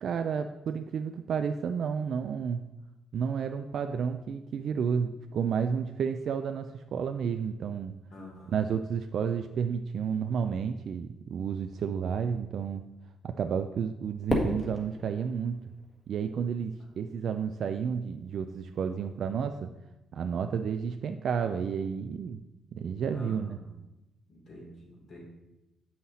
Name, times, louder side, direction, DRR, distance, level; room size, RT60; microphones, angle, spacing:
voice 1, 0.0-2.6 3.1-7.9 8.5-12.8 13.2-15.6 16.1-19.7 20.1-22.4 22.7-23.6, right 7 dB, 65° right, 7 dB, 0.4 m, -31 dB
voice 2, 8.1-8.6 23.1-23.7 24.3-25.2, left 1 dB, 60° left, -3 dB, 3.1 m, -48 dB
Fireworks, 14.3-16.6, left 1 dB, 25° left, 1.7 m, -33 dB
7.7 x 5.7 x 4.2 m, 0.98 s
cardioid pair, 90°, 0 cm